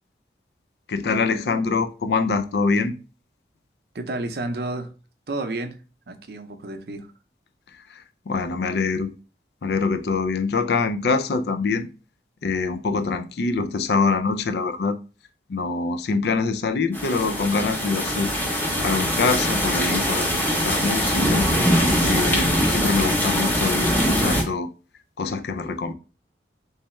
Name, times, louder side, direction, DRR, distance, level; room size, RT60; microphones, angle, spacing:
voice 1, 0.9-3.0 7.9-9.1 9.6-11.9 12.4-15.0 15.5-21.5 22.0-24.7 25.2-25.9, left 4 dB, 70° left, 0.4 m, -24 dB
voice 2, 3.9-4.9 5.3-5.8 6.1-7.1, right 2 dB, 65° right, 0.5 m, -31 dB
sound 1, 16.9-24.4, equal, 10° left, 0.6 m, -22 dB
3.3 x 3.2 x 3.0 m
head